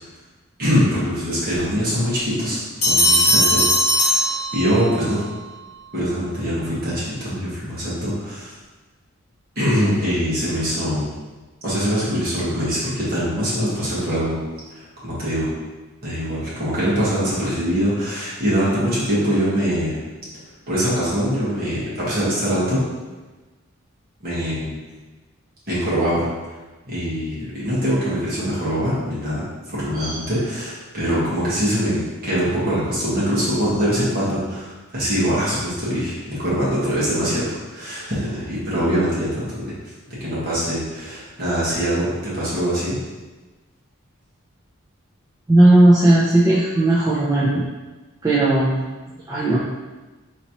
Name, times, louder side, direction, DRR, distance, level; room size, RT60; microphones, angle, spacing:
voice 1, 0.6-3.6 3.9-5.2 5.9-8.5 9.5-11.1 11.6-14.4 15.0-15.5 16.0-20.0 20.7-22.8 24.2-24.7 25.7-26.3 26.9-39.7 40.1-43.0, equal, 45° right, -9 dB, 1.4 m, -23 dB
sound 1, 2.8-5.0, equal, 30° left, 1.4 m, -18 dB
voice 2, 45.5-47.6 48.2-48.8 49.3-49.6, right 1 dB, 15° right, -8 dB, 0.4 m, -16 dB
4.1 x 3.0 x 2.9 m, 1.2 s
head